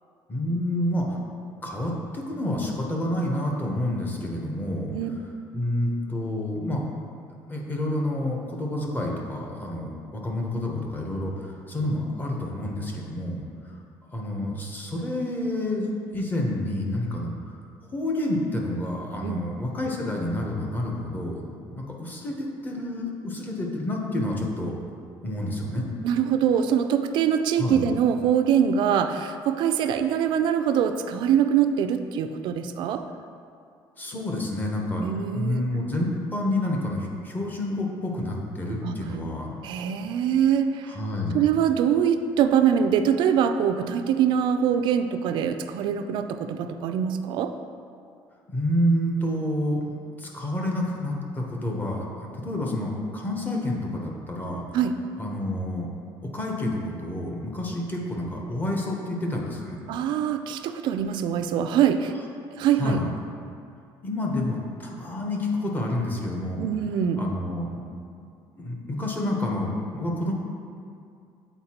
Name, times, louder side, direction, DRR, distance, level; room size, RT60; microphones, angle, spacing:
voice 1, 0.3-1.2 1.6-4.9 5.5-6.8 7.5-13.7 14.1-17.6 17.9-21.4 21.7-22.3 22.6-24.7 25.2-25.9 27.6-27.9 34.0-35.0 35.3-39.5 40.8-41.4 48.5-54.6 55.2-55.9 56.3-59.8 62.8-63.1 64.0-66.7 67.2-67.8 68.6-70.3, left 1 dB, 20° left, -1 dB, 0.8 m, -29 dB
voice 2, 26.0-33.0 35.0-35.6 38.8-38.9 39.6-40.9 41.3-47.5 54.7-55.0 59.9-62.1 62.6-63.0 66.6-67.2, right 8 dB, 60° right, 8 dB, 0.3 m, -23 dB
7.9 x 4.4 x 2.9 m, 2.4 s
cardioid pair, 160°, 9 cm